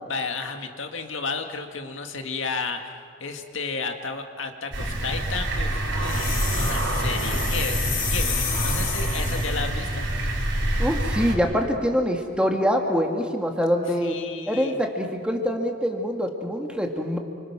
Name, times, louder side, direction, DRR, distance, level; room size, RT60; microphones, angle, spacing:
voice 1, 0.1-7.8 8.1-10.1 14.0-14.8, left 4 dB, 65° left, 4 dB, 2.1 m, -32 dB
sound 1, 4.7-11.3, right 1 dB, 60° right, 4.0 m, -26 dB
sound 2, 6.0-9.7, left 6 dB, 40° left, 4.2 m, -31 dB
voice 2, 10.8-14.1 14.5-17.2, equal, 5° right, 2 dB, 2.0 m, -24 dB
30.0 x 26.0 x 6.1 m, 2.2 s
head